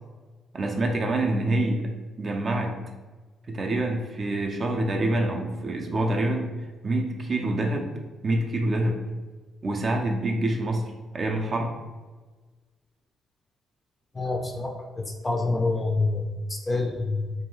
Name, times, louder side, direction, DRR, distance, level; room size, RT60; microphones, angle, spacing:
voice 1, 0.5-1.8 2.2-2.8 3.5-6.5 6.8-7.9 8.2-9.0 9.6-10.8 11.1-11.7, right 2 dB, 40° right, 1 dB, 0.4 m, -26 dB
voice 2, 14.1-17.3, left 3 dB, 25° left, 2 dB, 0.4 m, -27 dB
2.6 x 2.2 x 3.1 m, 1.3 s
cardioid pair, 90°, 0 cm